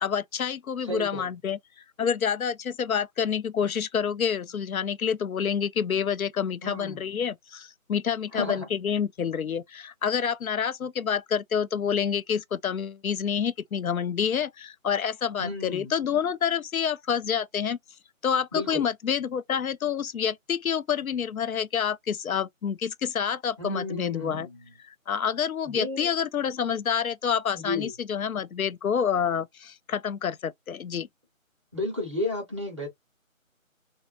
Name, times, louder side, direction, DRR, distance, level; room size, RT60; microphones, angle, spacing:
voice 1, 0.0-1.6 2.0-17.8 18.2-24.5 24.8-31.1, left 7 dB, 80° left, 0.5 m, -28 dB
voice 2, 0.9-1.2 6.6-7.1 8.3-8.7 15.4-15.9 18.5-18.8 23.6-24.6 25.6-26.1 27.5-27.9 31.7-32.9, left 2 dB, 20° right, 0.8 m, -32 dB
3.0 x 2.1 x 2.4 m
figure-of-eight pair, 160°, 41 cm